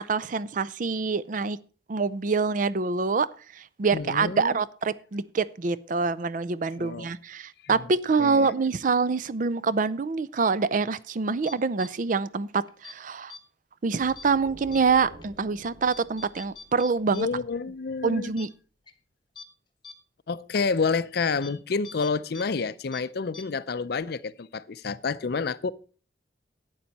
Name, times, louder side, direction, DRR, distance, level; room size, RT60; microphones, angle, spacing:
voice 1, 0.0-1.6 1.9-3.3 3.5-13.4 13.8-17.3 18.0-18.5, right 4 dB, 45° right, 0.5 m, -26 dB
voice 2, 3.9-4.6 6.8-7.1 7.6-7.8 8.2-8.5 17.1-18.3 20.3-25.7, left 4 dB, 60° left, 0.5 m, -29 dB
sound 1, 11.4-11.9 12.7-12.9 13.3-13.4 14.2-14.3 14.7-14.8 15.2-15.3 15.9-17.2 17.5-17.6 18.0-18.1 18.4-18.5 18.9-19.0 19.4-19.5 19.8-19.9 20.5-20.6 21.4-21.5 21.8-22.4 22.7-23.0 23.3-23.4, left 4 dB, 25° left, 1.0 m, -44 dB
sound 2, 14.0-17.7, right 1 dB, 60° right, 4.5 m, -50 dB
11.5 x 8.8 x 4.1 m
head